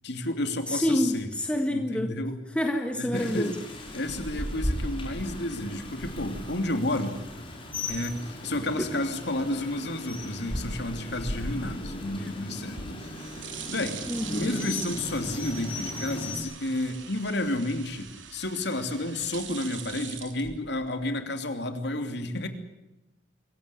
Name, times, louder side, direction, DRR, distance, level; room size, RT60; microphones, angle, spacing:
voice 1, 0.0-1.3 1.7-2.4 2.9-3.5 3.9-7.2 7.9-13.2 13.7-14.0 14.3-22.5, left 1 dB, 65° left, 7 dB, 3.0 m, -31 dB
voice 2, 0.7-2.1 2.5-3.5 14.1-14.5, left 1 dB, 5° left, 4 dB, 1.7 m, -27 dB
Rain, 3.1-16.4, left 1 dB, 30° left, 5.5 m, -36 dB
sound 1, 12.8-21.1, right 8 dB, 85° right, 3.4 m, -43 dB
25.5 x 15.5 x 9.9 m, 0.96 s
head